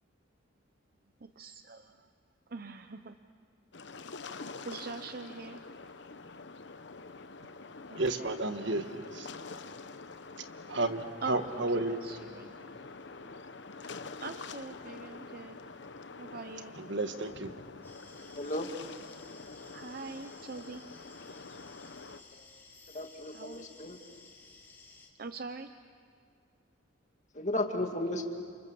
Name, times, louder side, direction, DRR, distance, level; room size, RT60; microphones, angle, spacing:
voice 1, 1.2-2.1 2.5-3.2 4.6-5.7 7.9-8.3 11.2-12.7 13.8-15.6 16.2-16.8 19.7-20.8 23.3-23.7 25.2-25.7, right 4 dB, 45° right, 0.7 m, -43 dB
sound 1, 3.7-22.2, left 4 dB, 60° left, 0.9 m, -46 dB
voice 2, 8.0-9.3 10.7-12.0 16.8-17.5, right 2 dB, 65° right, 1.4 m, -32 dB
sound 2, 17.8-25.1, left 4 dB, 10° left, 3.3 m, -56 dB
voice 3, 18.3-18.7 22.3-22.5 22.9-24.0 27.3-28.3, left 1 dB, 35° left, 2.3 m, -34 dB
30.0 x 27.5 x 7.1 m
head